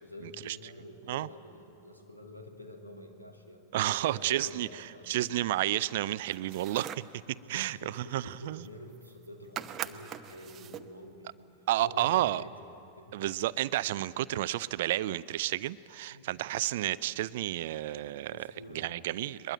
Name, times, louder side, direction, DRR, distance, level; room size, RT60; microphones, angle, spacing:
voice 1, 0.0-5.1 7.3-12.7 13.0-13.2 16.1-16.3 18.3-19.0, left 1 dB, 85° left, 2.7 m, -48 dB
voice 2, 3.7-7.1 7.5-8.6 11.7-12.4 13.1-18.3 18.7-19.5, right 14 dB, 55° right, 0.5 m, -31 dB
sound 1, 6.3-7.2 8.6-8.7 8.9-9.3 9.5-10.9, right 10 dB, 30° right, 0.9 m, -41 dB
22.0 x 22.0 x 9.0 m
figure-of-eight pair, 90°, 0 cm